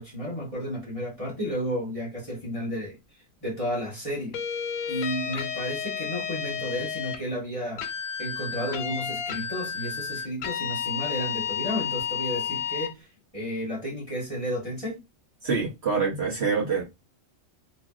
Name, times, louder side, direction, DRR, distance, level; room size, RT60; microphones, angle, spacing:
voice 1, 0.0-3.0 3.4-4.4 4.9-7.8 8.2-13.1 13.3-15.0, equal, 25° left, 1.2 m, -32 dB
sound 1, 4.3-7.2 7.8-12.9, left 8 dB, 80° left, 1.0 m, -31 dB
voice 2, 15.4-16.8, right 5 dB, 55° right, 1.1 m, -25 dB
2.9 x 2.7 x 2.4 m
omnidirectional pair, 1.5 m